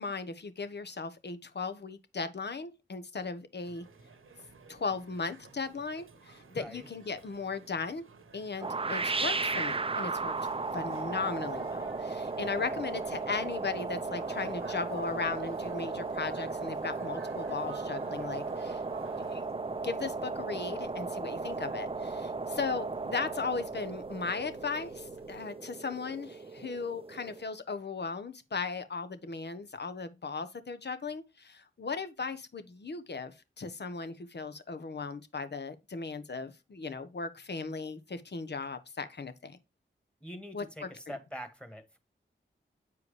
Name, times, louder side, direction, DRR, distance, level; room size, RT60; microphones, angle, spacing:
voice 1, 0.0-3.8 4.7-8.0 8.3-10.3 10.7-18.8 19.3-19.4 19.8-39.6 40.5-40.9, left 4 dB, 55° left, 1.1 m, -37 dB
sound 1, 3.6-19.5, right 4 dB, 90° right, 1.2 m, -52 dB
sound 2, 8.6-27.4, right 3 dB, 25° right, 0.6 m, -36 dB
sound 3, 10.2-25.4, left 1 dB, 85° left, 2.1 m, -59 dB
voice 2, 40.2-42.0, equal, 5° left, 1.9 m, -44 dB
8.4 x 4.7 x 3.3 m
cardioid pair, 50°, 20 cm